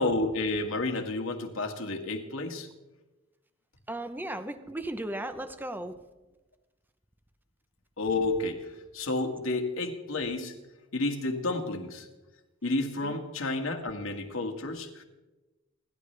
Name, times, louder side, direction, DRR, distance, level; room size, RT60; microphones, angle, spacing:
voice 1, 0.0-2.7 8.0-8.7 8.9-10.5 10.9-12.1 12.6-15.0, left 2 dB, 80° left, 3 dB, 2.0 m, -30 dB
voice 2, 3.9-5.9 13.0-13.2, right 1 dB, 10° right, 9 dB, 0.8 m, -36 dB
28.5 x 11.5 x 3.4 m, 1.1 s
head